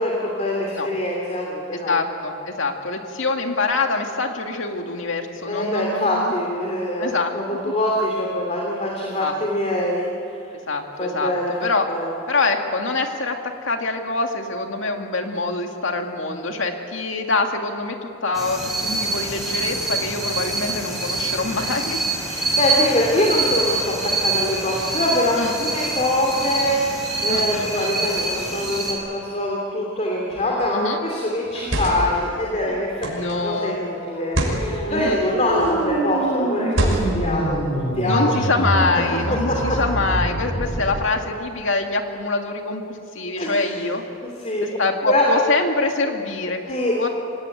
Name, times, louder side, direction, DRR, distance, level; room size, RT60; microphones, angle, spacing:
voice 1, 0.0-2.0 5.4-10.1 11.0-12.1 22.3-38.4 39.5-39.8 43.4-43.6 44.4-44.8 45.0-45.2 46.7-47.0, left 1 dB, 35° left, -1 dB, 2.9 m, -24 dB
voice 2, 1.7-6.3 7.0-7.7 9.2-9.3 10.7-11.3 11.6-11.9 12.3-22.0 25.3-25.5 27.3-27.9 30.7-31.0 33.1-33.8 34.9-35.2 38.0-44.0 44.8-46.7 47.0-47.1, left 3 dB, 70° left, 4 dB, 2.2 m, -25 dB
sound 1, 18.3-28.9, right 2 dB, ahead, 5.5 m, -25 dB
sound 2, 30.3-30.6 31.4-32.2 33.0-33.3 34.2-34.6 35.5-35.9 36.7-37.3, right 1 dB, 80° right, 5.9 m, -25 dB
sound 3, 33.9-41.0, right 1 dB, 55° left, 6.5 m, -26 dB
26.0 x 17.5 x 9.2 m, 2.7 s
head